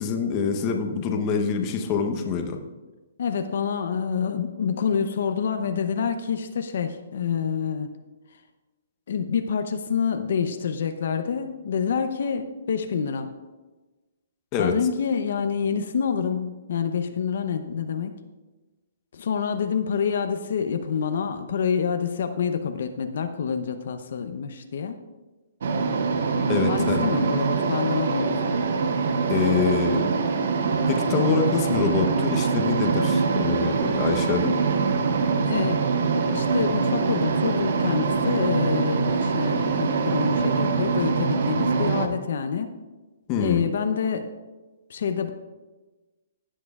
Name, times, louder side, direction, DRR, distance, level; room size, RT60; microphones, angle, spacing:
voice 1, 0.0-2.6 14.5-14.7 26.5-27.1 29.3-30.1 30.9-34.6 43.3-43.6, left 6 dB, 25° left, 4 dB, 0.8 m, -25 dB
voice 2, 3.2-7.9 9.1-13.3 14.6-18.2 19.1-25.0 26.7-28.6 35.4-42.7 43.4-44.3 44.9-45.3, left 6 dB, 65° left, 8 dB, 0.6 m, -27 dB
sound 1, 25.6-42.1, right 4 dB, 60° right, 0.8 m, -24 dB
16.0 x 7.5 x 2.3 m, 1.2 s
hypercardioid pair, 160°, 0 cm